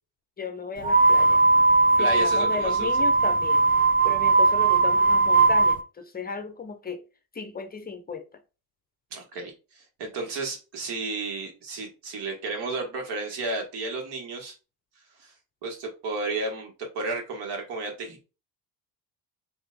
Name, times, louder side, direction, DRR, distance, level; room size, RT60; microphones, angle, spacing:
voice 1, 0.4-1.4 1.9-3.6 4.0-7.0 7.3-8.3, left 5 dB, 25° left, 0.6 m, -34 dB
sound 1, 0.8-5.8, right 3 dB, 25° right, 0.3 m, -19 dB
voice 2, 2.0-2.9 9.1-14.6 15.2-15.3 15.6-18.2, right 3 dB, 80° right, 1.8 m, -33 dB
3.3 x 3.1 x 4.0 m
cardioid pair, 115°, 40 cm